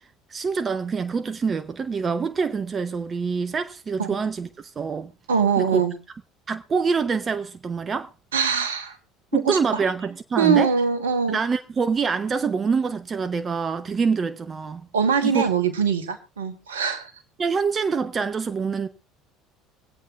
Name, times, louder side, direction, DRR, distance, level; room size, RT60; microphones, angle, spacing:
voice 1, 0.3-5.1 5.6-5.8 6.5-8.1 9.3-10.7 11.3-14.9 15.2-15.4 17.4-18.9, right 5 dB, 35° right, 0.8 m, -25 dB
voice 2, 5.3-5.9 8.3-9.0 9.3-9.8 10.4-11.4 14.9-17.1, right 6 dB, 80° right, 1.4 m, -22 dB
24.5 x 8.4 x 2.4 m
figure-of-eight pair, 60°, 0 cm